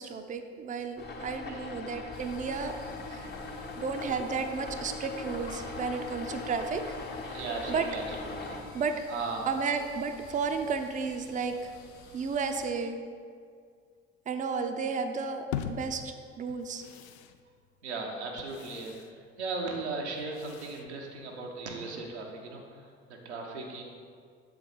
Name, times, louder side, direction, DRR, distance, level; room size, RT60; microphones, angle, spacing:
voice 1, 0.0-2.8 3.1-3.3 3.7-6.8 7.7-7.9 8.7-9.0 9.5-11.7 12.1-13.0 14.3-16.8, right 5 dB, 25° right, 6 dB, 0.5 m, -33 dB
sound 1, 1.0-8.6, left 3 dB, 30° left, 0.8 m, -40 dB
sound 2, 2.1-12.7, left 3 dB, 55° left, 1.2 m, -51 dB
voice 2, 7.3-8.6 9.1-9.5 17.8-23.8, right 3 dB, 90° right, 0 dB, 0.8 m, -37 dB
sound 3, 15.5-21.7, left 9 dB, 75° left, 0.5 m, -43 dB
7.0 x 4.6 x 3.9 m, 2.1 s
hypercardioid pair, 55°, 33 cm